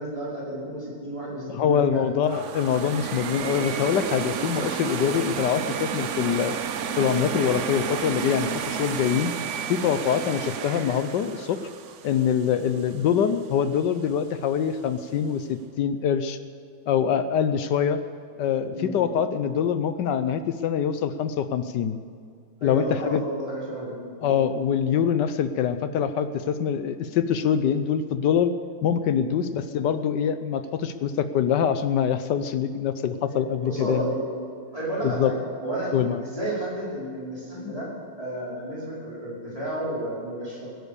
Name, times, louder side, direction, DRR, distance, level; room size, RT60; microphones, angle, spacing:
voice 1, 0.0-2.1 18.7-18.9 22.6-24.5 29.3-29.5 33.3-34.2 34.7-35.4 35.6-35.9 36.2-37.9 38.2-40.7, right 1 dB, 15° right, -7 dB, 5.4 m, -32 dB
voice 2, 1.5-6.5 7.0-9.3 9.7-11.6 12.0-16.4 16.9-18.0 18.4-22.0 22.6-23.2 24.2-28.5 28.8-34.1 35.0-35.3 35.9-36.2, left 8 dB, 70° left, 11 dB, 1.1 m, -24 dB
sound 1, 2.2-13.2, right 7 dB, 90° right, 0.6 m, -31 dB
17.0 x 11.0 x 6.9 m, 2.3 s
omnidirectional pair, 2.3 m